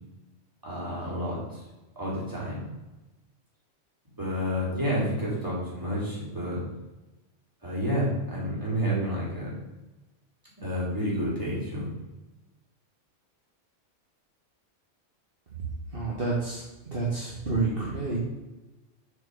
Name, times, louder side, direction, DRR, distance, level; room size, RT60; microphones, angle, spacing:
voice 1, 0.6-1.4 2.0-2.6 4.2-6.6 7.6-9.5 10.6-11.9, equal, 15° right, -6 dB, 2.9 m, -29 dB
voice 2, 15.9-16.6 16.9-18.2, right 3 dB, 50° right, -5 dB, 1.6 m, -29 dB
6.9 x 4.7 x 5.2 m, 1.1 s
omnidirectional pair, 1.3 m